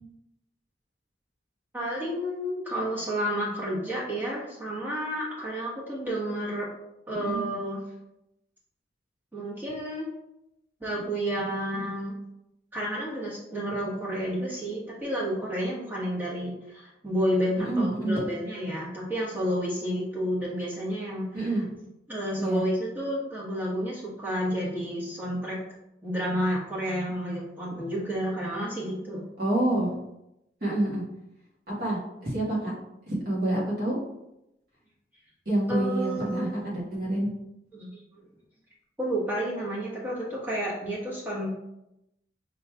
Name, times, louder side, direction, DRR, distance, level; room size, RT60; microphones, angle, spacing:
voice 1, 1.7-6.7 7.1-7.8 9.3-10.1 10.8-12.1 12.7-21.5 22.1-25.6 26.0-29.3 35.7-36.6 37.7-38.0 39.0-41.5, equal, 10° right, -6 dB, 1.1 m, -30 dB
voice 2, 7.1-7.4 17.6-18.2 21.3-21.7 22.4-22.6 29.4-29.9 30.6-31.0 31.7-32.7 33.1-34.0 35.4-37.3, right 1 dB, 55° right, -5 dB, 1.4 m, -27 dB
4.9 x 3.1 x 2.3 m, 0.87 s
head